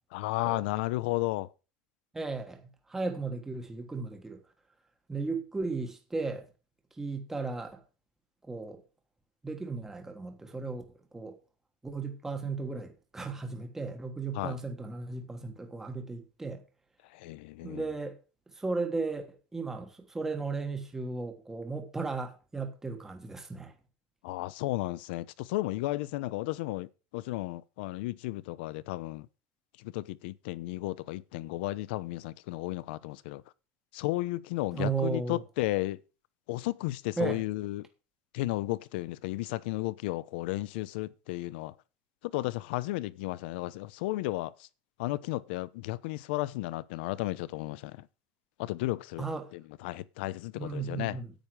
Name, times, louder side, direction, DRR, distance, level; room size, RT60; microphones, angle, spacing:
voice 1, 0.1-1.5 14.3-14.6 17.1-17.8 24.2-26.9 27.1-29.3 29.8-33.4 33.9-36.0 36.5-37.9 38.3-41.7 42.2-44.7 45.0-48.1 48.6-49.2 49.5-51.2, left 18 dB, 85° left, 0.7 m, -33 dB
voice 2, 2.1-2.6 2.9-4.4 5.1-6.4 7.0-7.8 8.4-8.8 9.4-10.8 11.1-11.4 11.8-16.6 17.6-18.2 18.5-23.7 34.7-35.4 37.2-37.4 49.2-49.5 50.6-51.3, right 4 dB, 10° right, 1.3 m, -35 dB
10.5 x 9.2 x 4.8 m
cardioid pair, 175°, 5 cm